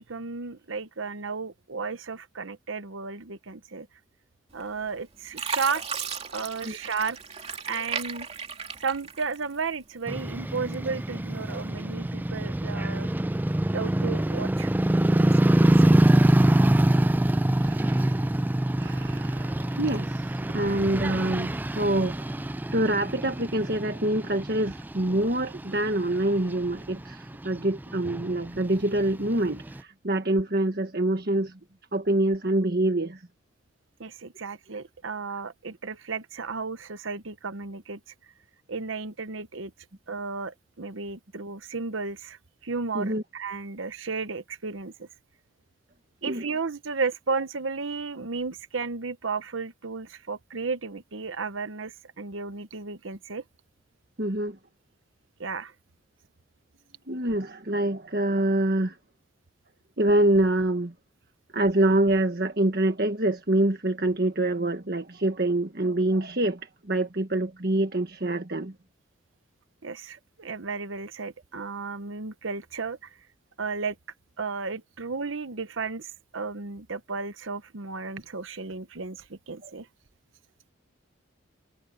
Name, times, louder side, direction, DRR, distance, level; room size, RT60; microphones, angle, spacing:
voice 1, 0.0-3.9 4.5-5.8 6.3-7.2 7.7-8.3 8.8-13.1 13.7-14.7 15.0-16.0 34.0-38.0 38.7-39.7 40.1-45.1 46.2-53.4 55.4-55.7 69.8-73.2 73.6-74.0 74.4-79.9, right 4 dB, 80° right, 1.0 m, -33 dB
Fill (with liquid), 4.6-5.0 5.3-9.7 10.2-11.0 11.5-11.7, right 6 dB, 30° right, 2.7 m, -35 dB
sound 1, 10.1-29.8, right 1 dB, 10° right, 0.3 m, -25 dB
voice 2, 17.5-18.3 18.8-22.3 22.7-31.6 31.9-33.2 42.9-43.2 46.3-46.5 54.2-54.6 57.1-59.0 60.0-60.9 61.5-68.7, right 1 dB, 50° right, 1.6 m, -26 dB
head